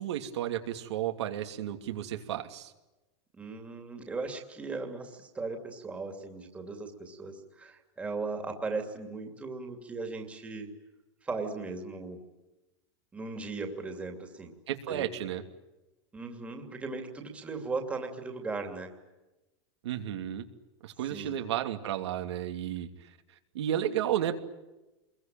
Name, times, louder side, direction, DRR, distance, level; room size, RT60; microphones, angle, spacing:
voice 1, 0.0-2.7 14.7-15.4 19.8-20.5 20.8-22.9 23.5-24.4, right 11 dB, 75° right, 5 dB, 2.9 m, -32 dB
voice 2, 3.4-10.7 11.2-12.2 13.1-14.5 14.9-15.0 16.1-18.9 21.1-21.5, right 3 dB, 10° right, 3 dB, 2.7 m, -37 dB
27.0 x 22.5 x 9.1 m, 1.0 s
supercardioid pair, 170°, 14 cm